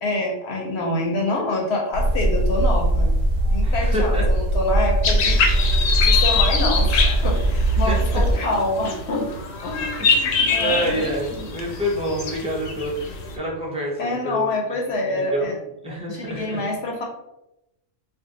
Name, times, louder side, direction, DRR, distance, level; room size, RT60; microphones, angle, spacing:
voice 1, 0.0-3.1 3.5-5.4 6.0-9.3 9.6-10.1 10.4-11.1 14.0-15.6 16.1-17.0, left 2 dB, 65° left, 0 dB, 0.8 m, -26 dB
sound 1, 1.9-8.3, right 1 dB, 85° right, 1.0 m, -20 dB
voice 2, 3.6-4.2 7.8-8.2 10.0-14.5 15.1-15.5 15.8-16.6, equal, 5° right, -5 dB, 0.6 m, -28 dB
sound 2, 5.0-13.3, left 5 dB, 85° left, 1.0 m, -24 dB
2.6 x 2.2 x 3.7 m, 0.87 s
omnidirectional pair, 1.3 m